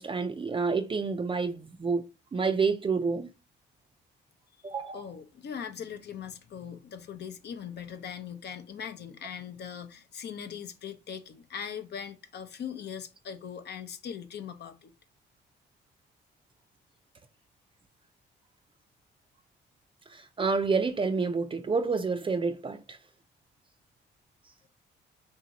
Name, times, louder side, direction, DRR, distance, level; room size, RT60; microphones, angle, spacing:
voice 1, 0.0-3.3 4.6-5.0 20.1-23.0, right 4 dB, 25° right, 0.4 m, -29 dB
voice 2, 4.9-14.9, left 8 dB, 60° left, 0.7 m, -40 dB
3.7 x 2.8 x 4.0 m
cardioid pair, 90°, 20 cm